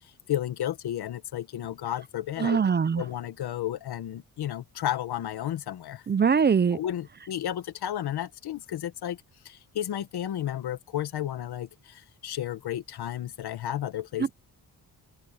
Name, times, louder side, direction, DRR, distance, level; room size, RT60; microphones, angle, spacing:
voice 1, 0.3-2.6 3.0-6.0 6.7-9.2 9.4-14.3, left 11 dB, 90° left, 1.5 m, -32 dB
voice 2, 2.4-3.0 6.1-6.8, right 6 dB, 30° right, 0.5 m, -22 dB
open air
cardioid pair, 120°, 38 cm